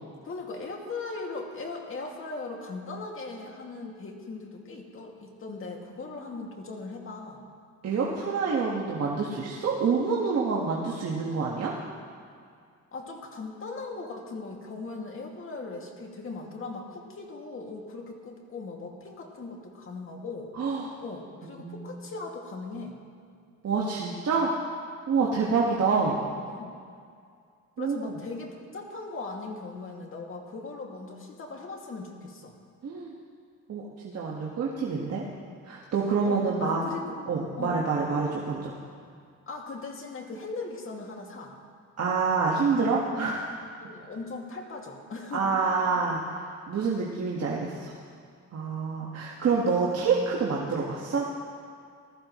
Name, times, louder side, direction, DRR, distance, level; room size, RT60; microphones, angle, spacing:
voice 1, 0.2-7.4 12.9-20.5 21.0-23.0 26.5-26.8 27.8-32.5 36.2-37.2 37.6-37.8 39.5-41.6 43.8-45.5 45.9-46.0, left 3 dB, 45° left, 0 dB, 2.3 m, -39 dB
voice 2, 7.8-11.7 20.5-20.9 21.6-22.0 23.6-24.5 25.1-26.2 27.8-28.1 32.8-33.1 33.7-35.2 35.6-36.8 37.3-38.8 42.0-43.5 45.3-48.0 48.5-51.3, right 5 dB, 55° right, -4 dB, 1.7 m, -27 dB
20.0 x 14.0 x 3.2 m, 2.2 s
cardioid pair, 90°, 30 cm